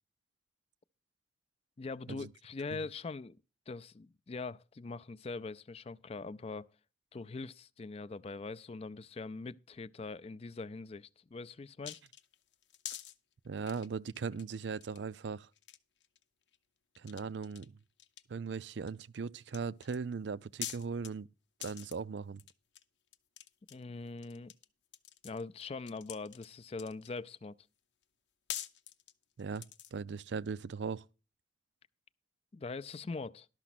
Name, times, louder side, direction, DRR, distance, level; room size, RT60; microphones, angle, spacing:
voice 1, 1.8-3.4 3.7-6.7 7.1-12.0 23.7-24.5 25.2-27.6 32.5-33.5, left 3 dB, 35° left, 0.4 m, -42 dB
sound 1, 11.8-13.2 13.6-14.4 14.7-15.0 15.5-16.2 16.5-16.6 17.0-17.7 18.0-19.0 19.5-20.0 20.6-21.1 21.6-22.0 22.4-22.8 23.1-24.7 24.9-27.2 28.0-28.1 28.5-30.0, left 11 dB, 85° left, 0.8 m, -45 dB
voice 2, 13.4-15.5 17.0-17.8 18.3-21.3 21.6-22.4 29.4-29.6 29.9-31.0, right 5 dB, 85° right, 0.5 m, -39 dB
12.0 x 6.0 x 5.9 m
head